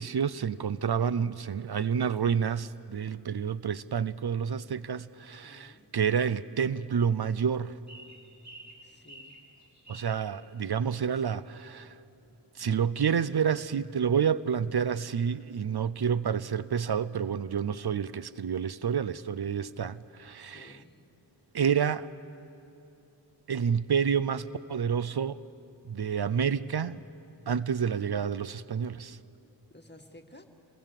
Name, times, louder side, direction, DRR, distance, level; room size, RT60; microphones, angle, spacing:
voice 1, 0.0-7.8 9.9-12.0 12.6-20.8 21.5-22.1 23.5-25.4 25.9-27.0 27.5-29.2, right 7 dB, 65° right, 0.6 m, -29 dB
voice 2, 5.4-5.9 8.8-9.4 20.4-21.0 29.7-30.4, left 1 dB, 25° left, 2.0 m, -54 dB
sound 1, 7.9-10.2, right 1 dB, 40° right, 3.8 m, -49 dB
26.0 x 20.5 x 7.5 m
wide cardioid pair, 55°, 42 cm